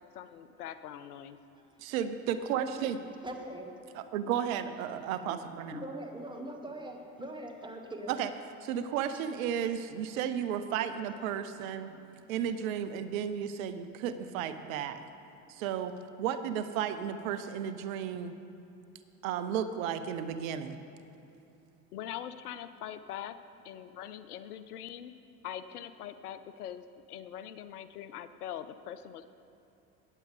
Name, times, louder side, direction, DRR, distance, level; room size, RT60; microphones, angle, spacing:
voice 1, 0.1-1.4 21.9-23.4 23.6-25.1 25.4-29.4, left 10 dB, 75° left, 13 dB, 0.5 m, -42 dB
voice 2, 1.8-3.0 3.9-5.8 8.1-8.3 8.6-11.9 12.3-15.0 15.5-18.3 19.2-20.8, right 9 dB, 65° right, 10 dB, 0.7 m, -33 dB
voice 3, 3.2-3.7 5.7-8.1 11.9-12.1, right 1 dB, 10° right, 2 dB, 1.5 m, -42 dB
15.5 x 9.3 x 3.3 m, 2.9 s
figure-of-eight pair, 60°, 46 cm